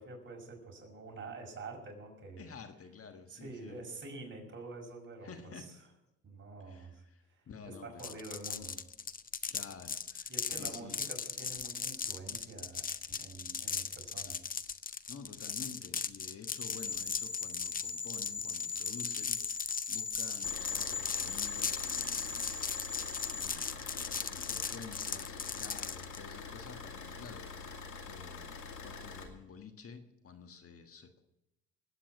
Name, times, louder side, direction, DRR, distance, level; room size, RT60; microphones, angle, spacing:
voice 1, 0.0-2.4 3.3-5.7 6.2-8.8 10.3-14.4, right 3 dB, 40° right, 1 dB, 5.9 m, -47 dB
voice 2, 2.4-3.8 5.2-5.7 6.6-8.2 9.5-11.0 15.1-22.9 23.3-31.2, left 6 dB, 50° left, 7 dB, 1.5 m, -51 dB
sound 1, 8.0-26.2, left 6 dB, 30° left, 0.6 m, -38 dB
sound 2, 16.5-23.5, left 4 dB, 5° left, 1.2 m, -39 dB
Car / Idling, 20.4-29.2, left 4 dB, 75° left, 2.5 m, -45 dB
20.5 x 8.6 x 5.9 m, 0.89 s
cardioid pair, 90°, 30 cm